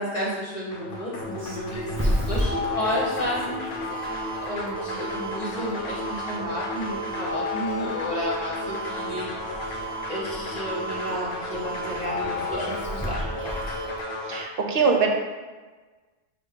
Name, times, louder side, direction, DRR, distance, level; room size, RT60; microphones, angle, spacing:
voice 1, 0.0-3.6 4.4-9.3 10.0-13.5, equal, 40° left, -5 dB, 1.2 m, -32 dB
sound 1, 0.7-14.4, left 1 dB, 60° left, 0.8 m, -33 dB
Doorbell, 1.2-14.0, left 1 dB, 15° right, 0.5 m, -32 dB
voice 2, 14.3-15.1, right 5 dB, 65° right, 2 dB, 0.8 m, -22 dB
6.2 x 2.3 x 3.6 m, 1.3 s
omnidirectional pair, 1.1 m